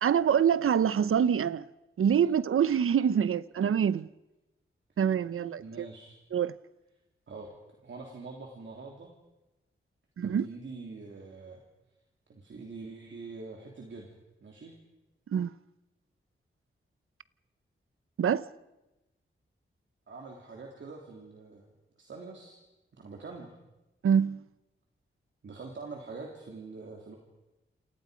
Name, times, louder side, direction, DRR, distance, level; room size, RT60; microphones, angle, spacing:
voice 1, 0.0-1.6 2.0-4.1 5.0-5.9 6.3-6.5 10.2-10.5 15.3-15.5 18.2-18.5 24.0-24.4, right 8 dB, 85° right, 0.8 m, -25 dB
voice 2, 5.3-6.2 7.3-7.5 7.8-9.1 10.2-11.6 12.3-14.8 20.1-21.6 22.0-22.6 23.0-23.5 25.4-27.2, right 3 dB, 60° right, 3.3 m, -44 dB
28.5 x 28.0 x 5.2 m
wide cardioid pair, 160°, 21 cm